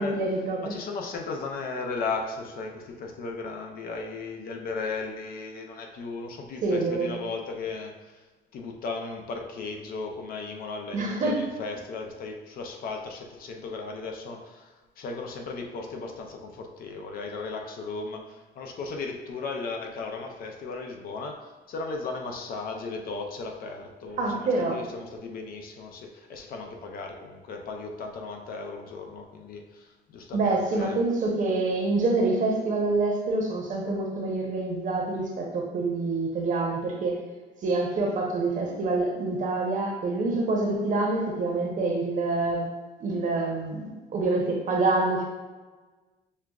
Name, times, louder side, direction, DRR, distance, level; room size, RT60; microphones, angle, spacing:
voice 1, 0.0-0.7 6.6-7.1 10.9-11.5 24.2-24.8 30.3-37.2 37.6-42.7 43.0-45.2, right 3 dB, 50° right, 0 dB, 0.9 m, -26 dB
voice 2, 0.6-8.2 8.5-31.0, left 4 dB, 60° left, 2 dB, 0.6 m, -36 dB
6.5 x 2.3 x 2.4 m, 1.3 s
cardioid pair, 110°, 17 cm